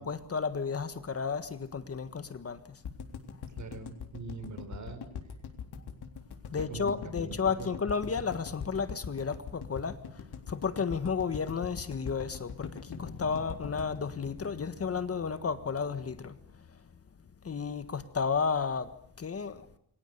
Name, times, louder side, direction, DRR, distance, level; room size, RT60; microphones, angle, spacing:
voice 1, 0.0-2.8 6.5-16.4 17.4-18.9 19.2-19.6, left 5 dB, 40° left, 1.6 m, -33 dB
sound 1, 2.8-15.0 15.3-15.4 15.6-15.7, left 6 dB, 85° left, 3.7 m, -42 dB
voice 2, 3.5-5.0 6.5-7.7, right 3 dB, 50° right, 5.5 m, -43 dB
Bass guitar, 12.9-17.2, left 5 dB, 55° left, 4.1 m, -50 dB
29.0 x 24.5 x 6.9 m
wide cardioid pair, 165°, 38 cm